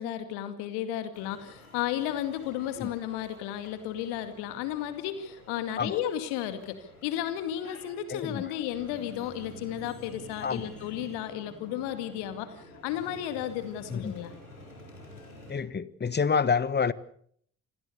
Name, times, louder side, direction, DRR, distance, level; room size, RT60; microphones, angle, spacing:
voice 1, 0.0-14.3, left 11 dB, 65° left, 2.4 m, -33 dB
sound 1, 1.1-15.5, left 1 dB, 90° left, 4.2 m, -50 dB
voice 2, 8.1-8.4 10.4-10.7 13.9-14.1 15.5-16.9, left 6 dB, 25° left, 1.4 m, -28 dB
27.5 x 19.5 x 6.7 m
figure-of-eight pair, 45°, 41 cm